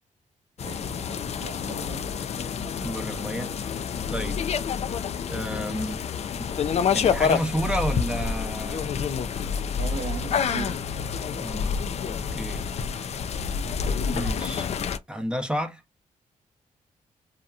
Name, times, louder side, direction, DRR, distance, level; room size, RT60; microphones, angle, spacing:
sound 1, 0.6-15.0, left 6 dB, 50° left, 0.4 m, -28 dB
voice 1, 0.6-2.1 9.7-10.8 14.5-14.6, right 6 dB, 50° right, 0.6 m, -38 dB
voice 2, 2.8-4.4 5.3-6.0 6.4-6.5 6.9-9.1 11.3-12.7 14.1-14.7 15.1-15.8, equal, 5° right, 0.7 m, -32 dB
2.8 x 2.2 x 2.4 m
cardioid pair, 85°, 14 cm